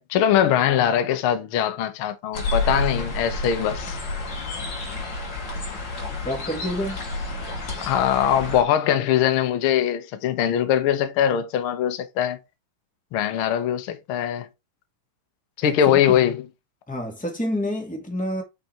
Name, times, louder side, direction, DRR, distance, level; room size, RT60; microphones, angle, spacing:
voice 1, 0.0-4.0 7.9-12.4 13.1-14.5 15.6-16.5, left 10 dB, 85° left, 1.1 m, -22 dB
sound 1, 2.3-8.6, left 2 dB, 40° left, 2.1 m, -30 dB
voice 2, 6.2-7.0 15.6-16.0 16.9-18.4, equal, 10° left, 0.4 m, -28 dB
5.6 x 5.2 x 4.3 m
omnidirectional pair, 3.8 m